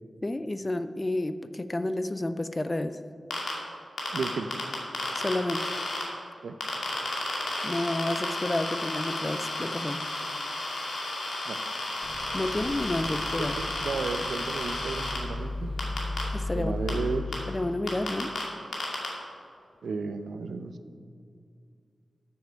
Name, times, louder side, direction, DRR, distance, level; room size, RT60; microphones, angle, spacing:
voice 1, 0.2-3.0 5.1-5.7 7.6-10.1 12.3-13.6 16.3-16.7 17.5-18.3, left 1 dB, 20° left, 11 dB, 0.3 m, -30 dB
sound 1, 3.3-3.5 4.0-6.0 6.6-15.2 15.8-16.2 16.9-17.0 17.3-17.4 17.9-18.4 18.7-19.1, left 2 dB, 80° left, 2.4 m, -32 dB
voice 2, 4.1-4.5 6.4-6.5 11.5-11.6 13.4-15.7 16.5-17.2 19.8-20.7, right 4 dB, 80° right, 9 dB, 0.6 m, -33 dB
Microwave oven, 12.0-17.2, left 2 dB, 20° right, 1.1 m, -36 dB
13.0 x 7.2 x 4.6 m, 2.3 s
wide cardioid pair, 175°, 0 cm